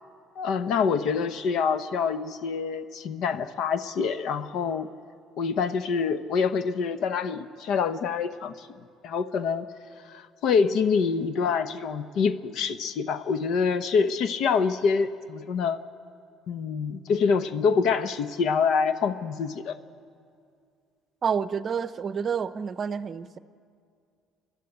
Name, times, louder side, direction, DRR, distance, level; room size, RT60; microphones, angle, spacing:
voice 1, 0.4-4.9 5.4-8.7 9.0-9.7 10.1-15.8 16.5-19.8, left 5 dB, 65° left, 11 dB, 0.9 m, -26 dB
voice 2, 21.2-23.4, right 6 dB, 40° right, 14 dB, 0.7 m, -29 dB
26.0 x 11.5 x 9.7 m, 2.3 s
cardioid pair, 105°, 0 cm